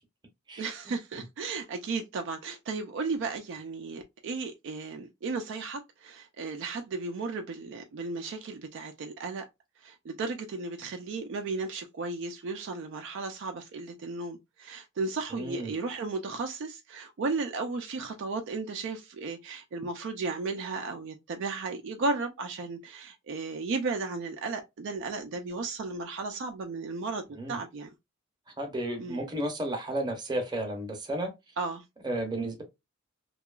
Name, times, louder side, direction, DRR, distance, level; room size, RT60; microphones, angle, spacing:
voice 1, 0.6-9.4 9.8-27.9 29.0-29.2 31.6-31.8, right 3 dB, 55° right, 0.3 m, -34 dB
voice 2, 15.3-15.7 27.3-27.6 28.6-31.3 32.0-32.6, right 1 dB, 20° right, 0.7 m, -33 dB
2.8 x 2.3 x 2.2 m
head